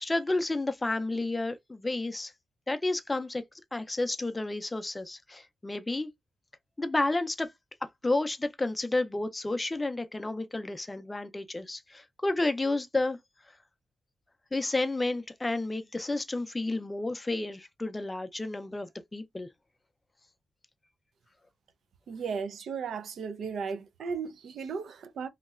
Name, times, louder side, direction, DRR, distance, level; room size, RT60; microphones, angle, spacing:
voice 1, 0.0-2.3 2.7-3.4 3.7-6.1 6.8-7.5 8.0-13.2 14.5-19.5, left 2 dB, 15° left, 0.4 m, -31 dB
voice 2, 22.1-25.3, right 5 dB, 80° right, 0.4 m, -35 dB
3.1 x 2.8 x 2.3 m
wide cardioid pair, 125°, 0 cm